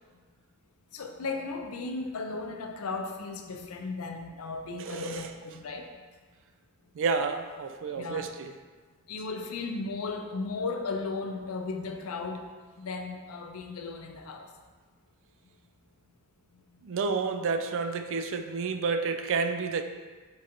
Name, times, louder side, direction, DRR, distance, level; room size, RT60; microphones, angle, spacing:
voice 1, 0.9-5.8 8.0-8.2 9.1-12.4 12.8-14.5, left 3 dB, 80° left, 4 dB, 0.5 m, -35 dB
voice 2, 4.8-5.3 7.0-8.5 16.8-19.8, right 4 dB, 60° right, 7 dB, 0.3 m, -30 dB
4.6 x 2.5 x 4.2 m, 1.4 s
head